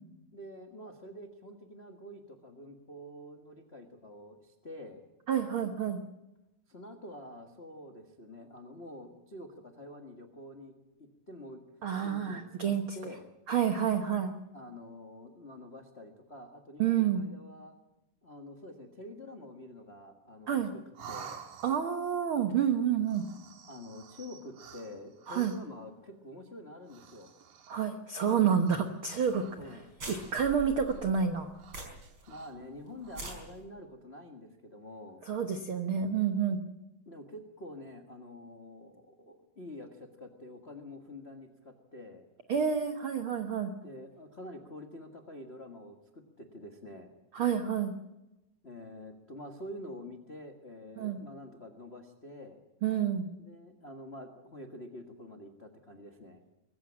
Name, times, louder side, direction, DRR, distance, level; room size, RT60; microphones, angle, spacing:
voice 1, 0.3-5.0 6.7-11.6 12.0-13.3 14.5-17.8 18.2-20.8 21.1-21.4 23.7-27.3 29.6-29.8 32.3-35.2 37.0-42.2 43.8-47.1 48.6-52.6 53.4-56.4, left 1 dB, 70° left, 3 dB, 0.6 m, -47 dB
voice 2, 5.3-6.0 11.8-13.0 13.5-14.3 16.8-17.2 20.5-20.7 21.6-23.3 25.3-25.5 27.7-29.4 30.1-31.5 35.2-36.6 42.5-43.7 47.3-47.9 51.0-51.2 52.8-53.3, right 8 dB, 85° right, 6 dB, 1.1 m, -29 dB
sound 1, 20.9-22.1 23.0-25.8 26.8-28.0 28.6-29.0 29.3-30.5 30.8-31.1 31.5-32.6 32.9-33.4, right 7 dB, 70° right, 3.3 m, -51 dB
sound 2, 29.2-29.4 29.6-29.7 30.0-32.2 32.5-32.6 33.0-33.4, right 2 dB, 30° right, 5.3 m, -43 dB
22.5 x 15.0 x 8.8 m, 0.95 s
omnidirectional pair, 4.2 m